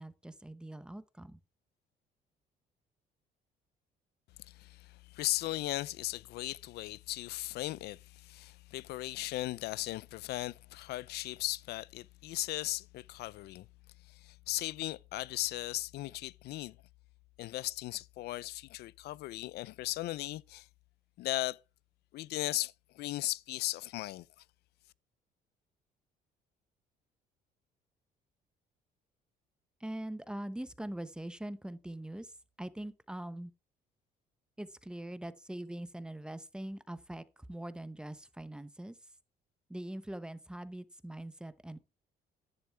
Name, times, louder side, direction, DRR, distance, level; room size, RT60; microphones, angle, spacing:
voice 1, 0.0-1.4 29.8-33.5 34.6-39.1 39.7-41.8, right 1 dB, 5° right, 0.9 m, -43 dB
voice 2, 4.4-13.7 14.1-16.8 17.4-20.7 21.2-21.6 22.1-24.3, left 17 dB, 75° left, 0.5 m, -37 dB
11.0 x 10.5 x 3.4 m
cardioid pair, 110°, 17 cm